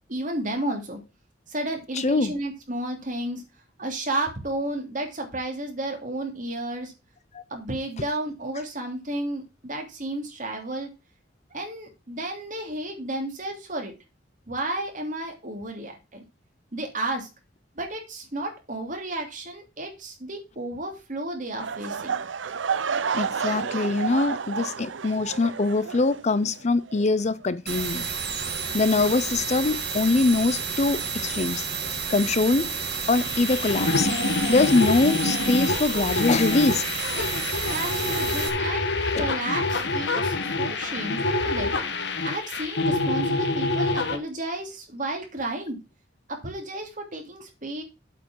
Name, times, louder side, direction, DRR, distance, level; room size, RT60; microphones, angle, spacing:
voice 1, 0.1-1.0 1.5-3.4 3.8-6.9 7.5-10.9 11.5-13.9 14.5-16.2 16.7-17.3 17.8-22.2 37.7-38.9 39.2-41.7 42.2-45.8 46.3-47.8, right 1 dB, 45° right, 3.0 m, -32 dB
voice 2, 2.0-2.3 7.3-7.4 23.1-28.1 28.7-31.7 32.1-32.7 33.1-34.1 34.5-36.8 37.2-37.3 39.1-39.3, left 3 dB, 35° left, 0.5 m, -23 dB
sound 1, 21.6-26.6 26.9-27.2 27.8-27.9, right 6 dB, 75° right, 0.6 m, -30 dB
sound 2, 27.7-38.5, right 5 dB, 60° right, 2.2 m, -31 dB
sound 3, 33.1-44.2, left 3 dB, 65° left, 1.3 m, -26 dB
8.2 x 5.0 x 7.3 m
head